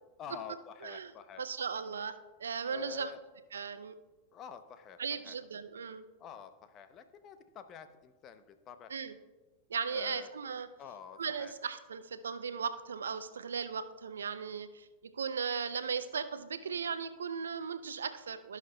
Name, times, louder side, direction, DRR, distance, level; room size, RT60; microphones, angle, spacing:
voice 1, 0.2-1.4 2.7-3.2 4.3-5.4 6.2-8.9 9.9-10.3 10.8-11.5, left 7 dB, 40° left, 10 dB, 0.7 m, -47 dB
voice 2, 1.4-3.1 3.5-4.0 5.0-6.1 8.9-9.2 9.7-10.7 11.2-18.6, right 6 dB, 80° right, 12 dB, 0.5 m, -37 dB
16.0 x 5.8 x 2.2 m, 1.2 s
hypercardioid pair, 95°, 0 cm